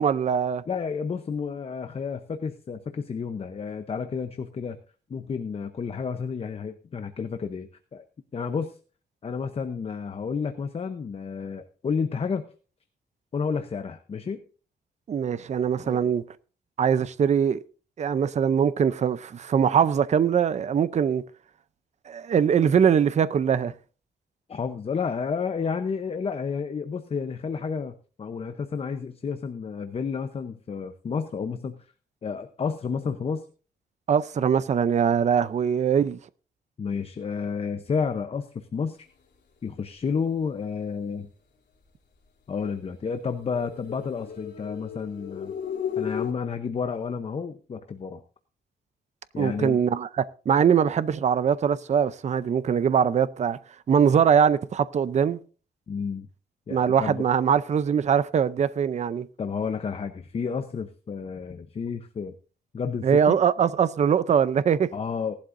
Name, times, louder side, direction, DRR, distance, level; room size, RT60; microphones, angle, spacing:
voice 1, 0.0-0.6 15.1-16.2 16.8-17.6 18.0-21.2 22.1-23.7 34.1-36.2 49.4-53.6 53.9-55.4 56.7-59.3 63.0-64.9, right 7 dB, 40° right, 0.6 m, -22 dB
voice 2, 0.7-4.8 5.1-8.0 8.3-8.8 9.2-12.5 13.3-14.4 15.8-16.1 24.5-31.9 32.2-33.5 36.8-39.0 39.6-41.3 42.5-45.5 46.0-48.2 49.3-49.8 55.9-56.3 56.7-57.3 59.4-62.3 62.7-63.4 64.9-65.3, left 5 dB, 35° left, 0.7 m, -31 dB
sound 1, 43.4-46.3, left 8 dB, 80° left, 3.0 m, -34 dB
18.0 x 11.5 x 2.6 m
wide cardioid pair, 170°, 18 cm